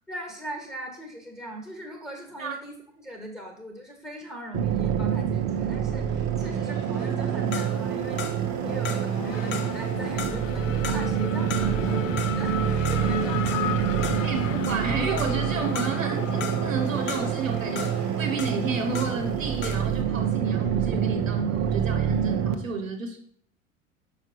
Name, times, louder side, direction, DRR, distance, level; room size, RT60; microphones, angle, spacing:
voice 1, 0.1-8.3 8.6-14.6, right 1 dB, 5° left, 2 dB, 1.4 m, -39 dB
sound 1, 4.5-22.5, right 8 dB, 50° right, 0.8 m, -27 dB
Race car auto racing / Accelerating revving vroom, 5.5-22.5, left 8 dB, 80° left, 0.6 m, -38 dB
sound 2, 7.5-19.4 19.6-20.0, left 7 dB, 30° left, 0.7 m, -38 dB
voice 2, 14.2-23.2, right 4 dB, 85° right, 5 dB, 0.9 m, -31 dB
5.9 x 5.0 x 4.3 m, 0.62 s
figure-of-eight pair, 75°, 38 cm